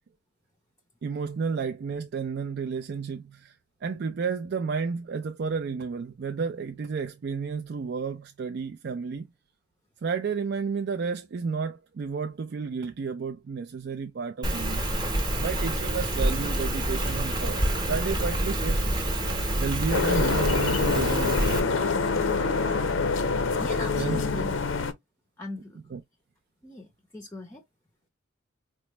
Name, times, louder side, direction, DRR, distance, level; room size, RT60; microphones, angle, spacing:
voice 1, 1.0-3.6 3.8-9.3 10.0-14.9 15.4-17.6 17.9-18.9 19.6-21.7 24.0-24.2 25.9-26.0, right 5 dB, 55° right, 0.3 m, -31 dB
Rain, 14.4-21.6, right 1 dB, 20° right, 0.9 m, -27 dB
sound 1, 15.2-23.0, right 3 dB, 75° right, 0.8 m, -46 dB
sound 2, 19.9-24.9, left 4 dB, 75° left, 0.5 m, -26 dB
voice 2, 23.5-24.7 25.4-25.8 26.6-27.6, left 1 dB, 15° left, 0.5 m, -39 dB
4.3 x 2.1 x 3.0 m
head